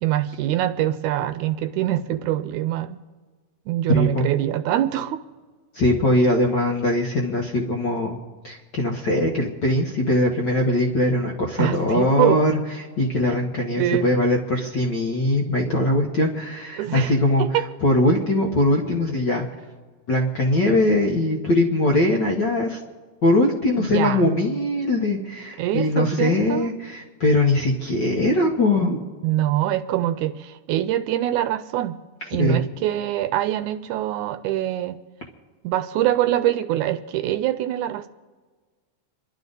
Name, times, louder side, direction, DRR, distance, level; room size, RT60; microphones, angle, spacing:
voice 1, 0.0-3.0 3.7-5.2 11.6-12.4 13.2-13.4 13.8-14.1 16.8-17.7 23.8-24.3 25.6-26.8 29.2-31.9 32.3-35.0 35.6-38.1, right 13 dB, 80° right, 11 dB, 1.9 m, -24 dB
voice 2, 3.9-4.3 5.7-8.2 8.4-12.5 13.0-17.4 17.8-19.4 20.1-22.8 23.2-29.0 32.4-32.6, left 1 dB, 50° left, 0 dB, 1.4 m, -21 dB
28.0 x 11.5 x 4.0 m, 1.4 s
omnidirectional pair, 3.7 m